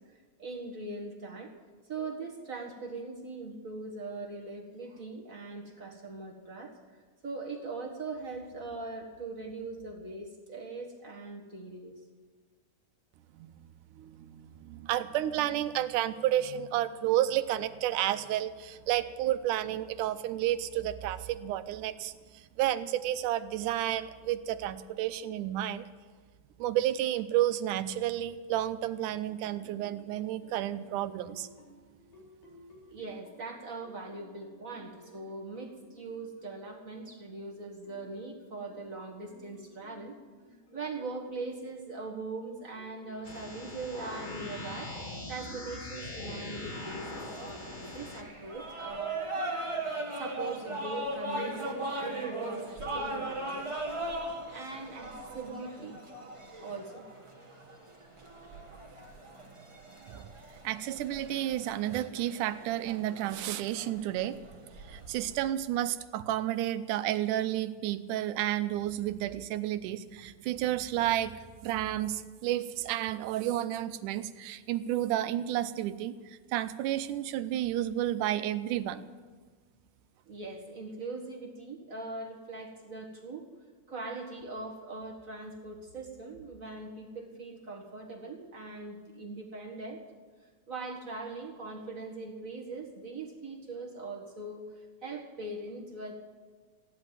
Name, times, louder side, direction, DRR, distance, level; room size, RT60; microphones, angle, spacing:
voice 1, 0.1-1.5 1.8-7.0 7.2-12.0 32.9-40.1 40.7-44.9 45.3-49.2 50.1-53.7 54.5-56.0 56.6-57.0 80.2-83.4 83.9-90.0 90.7-96.2, right 3 dB, 35° right, 0 dB, 1.5 m, -41 dB
voice 2, 14.0-25.8 26.6-31.5 60.1-60.3 60.6-64.4 64.9-71.3 71.6-79.1, right 13 dB, 90° right, 11 dB, 2.2 m, -31 dB
sound 1, 29.3-37.1 37.8-41.5 42.1-48.6, equal, 85° left, 5.9 m, -56 dB
sound 2, 43.2-48.2, left 1 dB, 45° left, 0.6 m, -41 dB
sound 3, 46.6-65.5, right 1 dB, 15° right, 0.9 m, -39 dB
15.5 x 11.0 x 7.6 m, 1.5 s
omnidirectional pair, 3.5 m